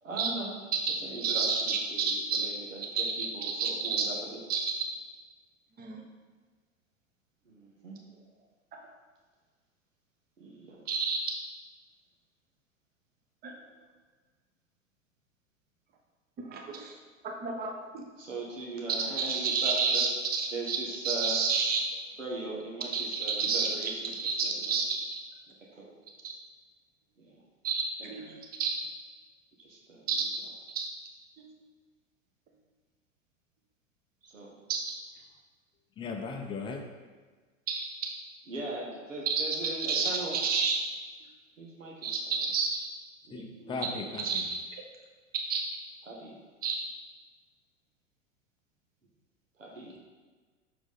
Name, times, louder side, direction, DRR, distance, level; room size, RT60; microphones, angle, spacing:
voice 1, 0.0-0.5 1.0-3.1 3.3-4.1 7.4-8.0 10.4-10.8 18.2-20.0 20.5-21.4 22.2-24.1 24.4-24.8 25.7-25.9 27.2-27.4 28.0-28.1 29.6-30.1 34.2-34.5 38.5-40.4 41.6-42.4 43.2-44.0 46.1-46.4 49.6-50.0, right 2 dB, 80° right, -3 dB, 1.5 m, -40 dB
voice 2, 0.7-4.1 4.5-4.7 5.8-6.0 8.7-8.8 10.9-11.2 13.4-13.5 16.4-17.0 17.2-18.0 19.2-20.8 21.0-21.8 22.9-25.2 26.2-26.3 27.6-28.7 30.1-30.4 30.7-30.9 31.5-31.6 34.7-34.8 37.7-37.8 39.3-39.4 39.9-40.8 42.0-42.9 43.8-43.9 44.2-44.6 45.5-45.6 46.6-46.8, right 5 dB, 25° right, 1 dB, 1.0 m, -30 dB
voice 3, 36.0-36.9 43.3-44.4, left 4 dB, 15° left, 4 dB, 0.5 m, -37 dB
6.3 x 4.8 x 4.0 m, 1.4 s
figure-of-eight pair, 90°, 38 cm